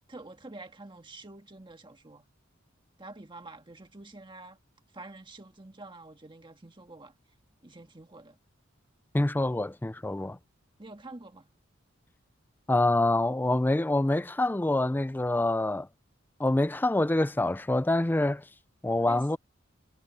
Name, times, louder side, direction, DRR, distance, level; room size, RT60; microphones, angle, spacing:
voice 1, 0.1-2.2 3.0-4.6 4.9-7.1 7.6-8.4 10.8-11.5 19.0-19.4, right 2 dB, 25° right, 1.6 m, -47 dB
voice 2, 9.1-10.4 12.7-15.9 16.4-18.4 18.8-19.4, left 2 dB, 10° left, 0.4 m, -26 dB
head